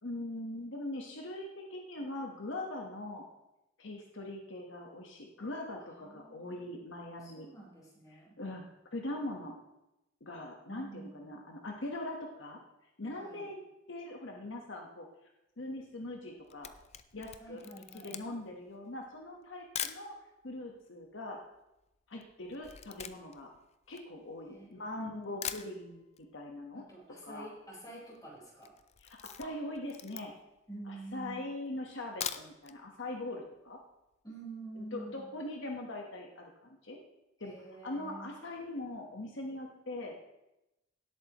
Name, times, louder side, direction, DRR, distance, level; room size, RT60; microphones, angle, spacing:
voice 1, 0.0-3.3 3.8-7.5 8.1-8.6 8.9-9.5 10.2-12.6 13.0-13.6 13.9-15.1 15.6-16.7 17.1-20.2 20.4-21.4 22.1-23.5 23.9-26.8 27.2-27.5 29.0-30.3 30.9-33.8 34.8-36.5 36.8-37.0 37.4-37.5 37.8-40.1, left 1 dB, 80° left, 1 dB, 1.3 m, -41 dB
voice 2, 5.8-6.6 7.2-8.3 10.6-11.3 13.2-13.5 17.4-18.2 24.5-25.5 26.7-28.7 30.7-31.4 34.2-35.2 37.4-38.3, right 2 dB, 20° left, -5 dB, 4.5 m, -48 dB
Camera, 16.2-20.1 20.8-20.9 21.1-24.7 25.1-25.2 25.4-26.3 26.5-26.6 26.9-27.0 27.2-27.6 28.0-28.2 28.6-30.6 31.1-31.2 32.0-32.8 33.1-33.2 33.6-33.7, left 9 dB, 35° left, 0.4 m, -43 dB
17.5 x 8.2 x 3.0 m, 0.93 s
head